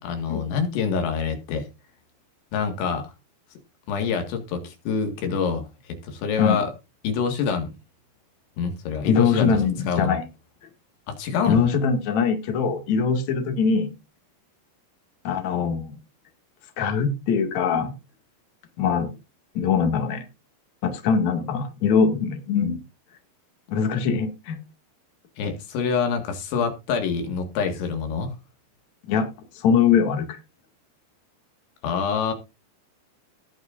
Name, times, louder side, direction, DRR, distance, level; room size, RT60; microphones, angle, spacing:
voice 1, 0.0-1.7 2.5-3.1 3.9-6.7 7.0-7.7 8.6-10.2 11.1-11.7 25.4-28.3 31.8-32.3, left 6 dB, 80° left, 5 dB, 4.3 m, -26 dB
voice 2, 9.0-10.2 11.5-13.9 15.2-15.9 16.8-17.9 18.8-19.1 19.5-20.2 20.8-22.8 23.7-24.6 29.1-29.3 29.5-30.4, left 6 dB, 45° left, 4 dB, 3.0 m, -22 dB
19.5 x 6.4 x 2.6 m, 0.26 s
omnidirectional pair, 5.2 m